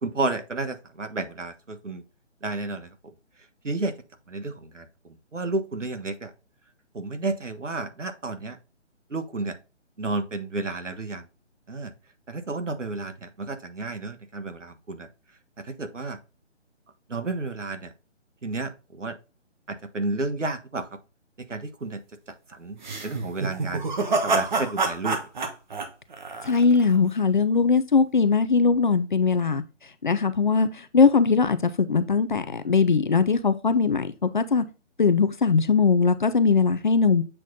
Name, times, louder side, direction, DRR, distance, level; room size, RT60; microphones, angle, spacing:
voice 1, 0.0-2.0 2.4-2.9 3.6-3.9 4.3-6.3 6.9-8.6 9.1-9.5 10.0-11.2 11.7-11.9 12.3-15.1 15.6-16.2 17.1-17.9 18.4-19.2 19.7-20.9 21.5-22.0 22.5-23.8 24.2-25.2, right 3 dB, 80° right, 1.4 m, -31 dB
sound 1, 22.8-27.0, right 3 dB, 40° right, 1.2 m, -27 dB
voice 2, 26.4-29.6 30.0-34.6 35.0-37.2, left 5 dB, 40° left, 0.6 m, -20 dB
7.6 x 4.1 x 3.7 m
figure-of-eight pair, 150°, 36 cm